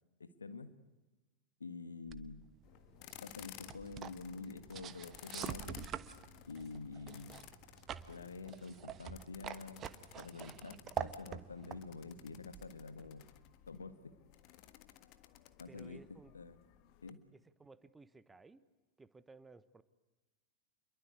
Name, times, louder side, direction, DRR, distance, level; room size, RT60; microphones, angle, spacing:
voice 1, 0.2-0.8 1.6-2.4 3.2-5.9 6.5-7.4 8.1-13.2 13.7-14.1 15.6-16.6 17.0-17.3, left 4 dB, 75° left, 11 dB, 1.7 m, -48 dB
sound 1, 2.1-13.2, right 9 dB, 30° right, 1.2 m, -47 dB
sound 2, 2.6-17.1, left 14 dB, 40° left, 1.6 m, -57 dB
voice 2, 15.7-16.3 17.3-18.6 19.0-19.8, right 3 dB, 10° right, 15 dB, 1.2 m, -58 dB
28.5 x 22.5 x 8.2 m, 1.1 s
figure-of-eight pair, 90°, 0 cm